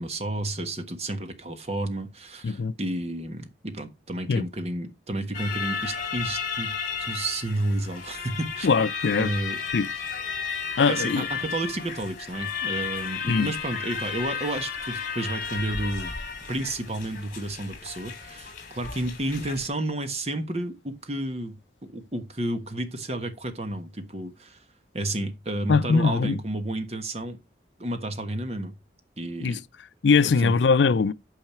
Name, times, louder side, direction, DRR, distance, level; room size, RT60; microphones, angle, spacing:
voice 1, 0.0-8.7 9.2-9.6 10.9-16.1 16.5-24.6 24.9-27.4 27.8-28.7 29.2-29.6 30.2-30.5, right 1 dB, 35° right, 1.3 m, -31 dB
voice 2, 2.4-2.7 4.3-4.4 8.6-9.3 9.7-9.9 10.8-11.3 13.3-13.5 25.7-26.4 29.4-29.6 30.0-31.1, left 5 dB, 85° left, 0.5 m, -21 dB
sound 1, 5.3-19.7, left 6 dB, 50° left, 2.4 m, -33 dB
9.0 x 5.6 x 4.3 m
head